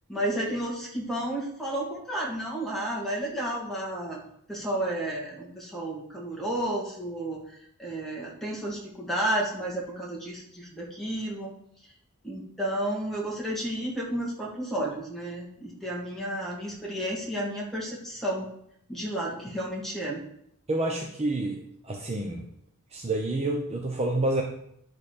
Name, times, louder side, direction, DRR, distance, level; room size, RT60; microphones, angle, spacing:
voice 1, 0.1-4.2 4.5-7.4 7.8-11.5 12.2-18.5 18.9-20.2, right 1 dB, ahead, -4 dB, 2.7 m, -32 dB
voice 2, 20.7-22.4 22.9-24.4, right 2 dB, 30° right, 1 dB, 0.9 m, -28 dB
11.0 x 4.3 x 6.8 m, 0.71 s
head